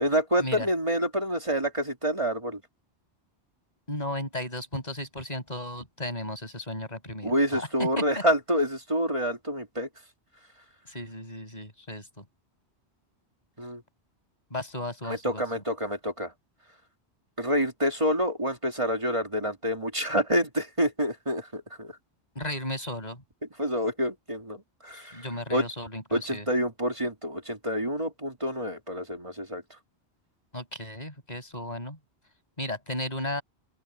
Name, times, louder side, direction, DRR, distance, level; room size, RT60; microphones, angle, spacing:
voice 1, 0.0-2.6 7.2-9.9 13.6-13.8 15.1-16.3 17.4-21.9 23.6-25.2 25.5-25.7 26.1-29.6, equal, 30° right, 2.3 m, -27 dB
voice 2, 3.9-8.1 10.9-12.2 14.5-15.4 22.3-23.2 24.9-26.5 30.5-32.0 32.6-33.4, left 1 dB, 40° left, 6.2 m, -35 dB
open air
omnidirectional pair, 1.1 m